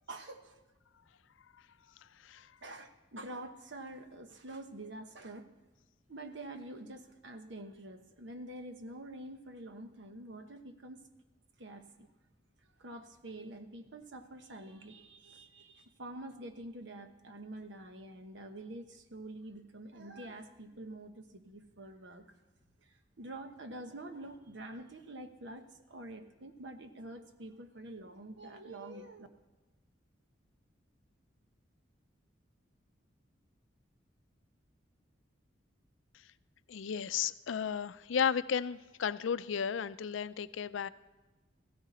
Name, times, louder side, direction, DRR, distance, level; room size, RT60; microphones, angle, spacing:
voice 1, 0.1-0.6 2.6-5.5 6.1-11.0 11.6-12.1 12.8-22.2 22.8-29.3, right 1 dB, 70° right, 7 dB, 1.1 m, -47 dB
voice 2, 36.7-40.9, left 7 dB, 85° left, 15 dB, 0.5 m, -34 dB
16.0 x 14.0 x 4.2 m, 1.2 s
head